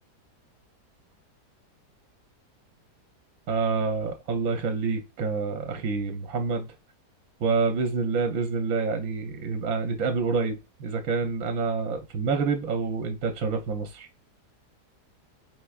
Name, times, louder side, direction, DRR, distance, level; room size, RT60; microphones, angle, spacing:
voice 1, 3.5-6.7 7.4-14.1, right 4 dB, 65° right, 1.0 m, -27 dB
4.6 x 3.3 x 2.3 m
omnidirectional pair, 1.8 m